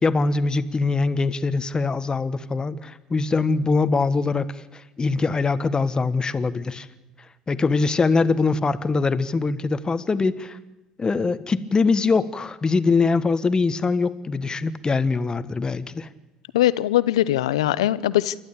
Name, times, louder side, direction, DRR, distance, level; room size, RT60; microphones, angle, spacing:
voice 1, 0.0-6.9 7.5-10.6 11.0-16.1, left 4 dB, 25° left, 14 dB, 1.4 m, -23 dB
voice 2, 16.5-18.4, left 13 dB, 80° left, 17 dB, 0.7 m, -21 dB
28.5 x 12.0 x 8.5 m, 1.1 s
hypercardioid pair, 65°, 3 cm